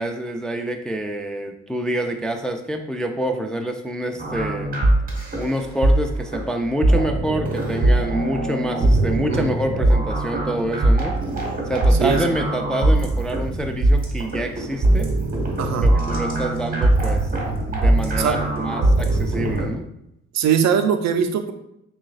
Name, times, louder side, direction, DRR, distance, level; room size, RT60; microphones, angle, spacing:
voice 1, 0.0-4.7 5.4-11.2 11.7-15.1 15.8-19.8, right 1 dB, ahead, 4 dB, 0.3 m, -27 dB
sound 1, 4.2-19.7, right 1 dB, 30° right, 1.3 m, -21 dB
voice 2, 9.1-9.5 12.0-12.2 15.6-15.9 18.2-18.4 20.3-21.5, right 7 dB, 65° right, 7 dB, 0.5 m, -21 dB
6.0 x 2.3 x 2.4 m, 0.81 s
cardioid pair, 90°, 30 cm